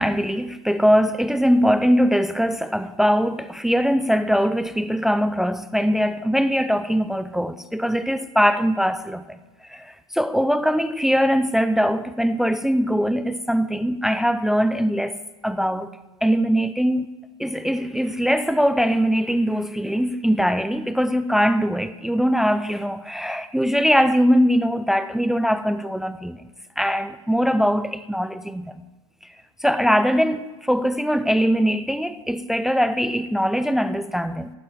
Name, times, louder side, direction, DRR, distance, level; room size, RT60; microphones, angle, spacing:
voice 1, 0.0-9.4 9.7-15.2 15.4-15.9 16.2-17.1 17.4-26.4 26.8-28.7 29.6-34.5, equal, ahead, 0.5 m, -21 dB
14.0 x 11.5 x 5.9 m
figure-of-eight pair, 95°, 16 cm